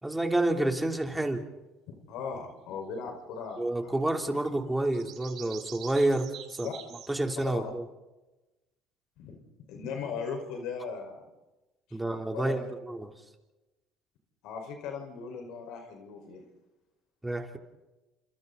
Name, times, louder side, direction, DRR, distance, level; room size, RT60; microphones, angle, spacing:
voice 1, 0.0-1.4 3.6-6.7 7.1-7.8 11.9-13.1 17.2-17.6, right 2 dB, 10° right, 4 dB, 3.4 m, -29 dB
voice 2, 1.9-4.4 6.6-6.7 7.4-7.7 9.2-9.4 9.7-11.3 12.0-12.7 14.4-16.4, left 5 dB, 70° left, 3 dB, 4.9 m, -38 dB
sound 1, 3.5-3.6 4.8-7.7, right 10 dB, 60° right, 5.2 m, -46 dB
29.5 x 27.5 x 4.1 m, 1.1 s
supercardioid pair, 90°, 0 cm